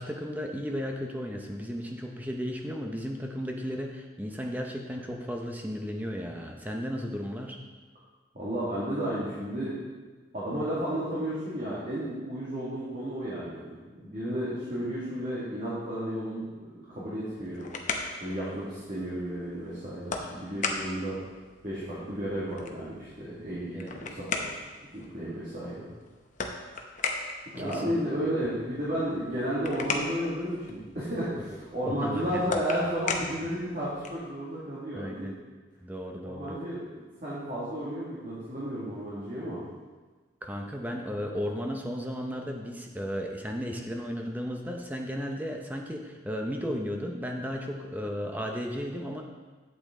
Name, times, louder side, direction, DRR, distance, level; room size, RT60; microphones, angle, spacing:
voice 1, 0.0-7.6 23.7-24.1 27.6-27.8 31.8-32.6 34.9-35.3 35.8-36.6 40.4-49.2, equal, 10° right, 1 dB, 0.6 m, -34 dB
voice 2, 8.3-9.7 10.3-13.7 14.0-16.4 16.9-17.7 18.2-21.2 21.6-24.5 24.9-25.9 27.5-35.3 36.2-39.6, equal, 40° right, -9 dB, 2.0 m, -33 dB
sound 1, 17.2-34.3, left 4 dB, 40° left, 0.7 m, -38 dB
8.6 x 8.4 x 3.7 m, 1.3 s
head